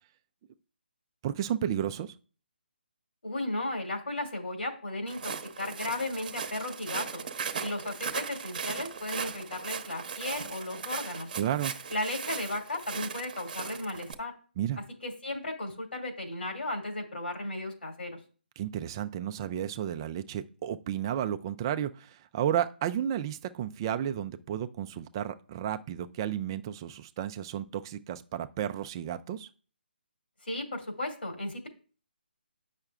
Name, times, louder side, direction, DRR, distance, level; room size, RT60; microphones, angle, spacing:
voice 1, 1.2-2.2 11.4-11.7 14.6-14.8 18.6-29.5, right 10 dB, 25° right, 10 dB, 0.3 m, -32 dB
voice 2, 3.2-5.3 5.6-7.3 7.6-11.3 11.9-14.3 15.0-18.2 30.4-31.7, left 2 dB, 75° left, 2 dB, 2.4 m, -35 dB
Walk footsteps, 5.1-14.1, right 6 dB, 50° right, 0.8 m, -38 dB
8.7 x 5.7 x 2.4 m, 0.40 s
figure-of-eight pair, 145°, 6 cm